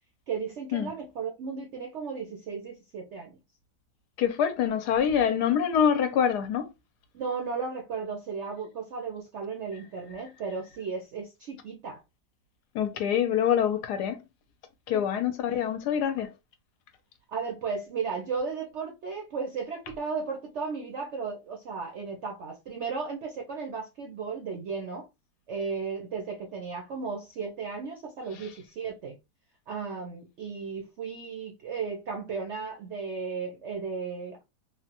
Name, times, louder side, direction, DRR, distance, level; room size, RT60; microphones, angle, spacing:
voice 1, 0.3-3.4 7.1-12.0 14.9-15.0 15.5-15.6 17.3-25.1 25.5-29.2 29.7-34.4, right 5 dB, 65° right, 0.7 m, -35 dB
voice 2, 4.2-6.7 12.7-14.2 14.9-16.3, left 8 dB, 75° left, 1.1 m, -25 dB
3.2 x 2.1 x 2.8 m
omnidirectional pair, 1.8 m